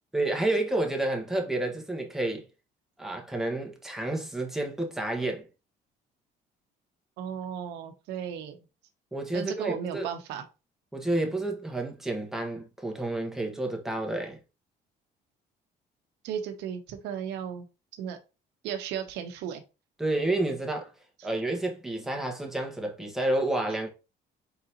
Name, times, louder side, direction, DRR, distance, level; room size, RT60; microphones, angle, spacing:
voice 1, 0.1-2.4 3.0-5.5 9.1-10.1 10.9-14.4 20.0-20.9 21.2-23.9, right 2 dB, ahead, 1.3 m, -30 dB
voice 2, 7.2-8.6 9.3-10.4 16.2-17.7 18.0-18.2 18.6-19.6, right 8 dB, 90° right, 0.8 m, -35 dB
4.7 x 3.8 x 2.8 m
cardioid pair, 110°, 17 cm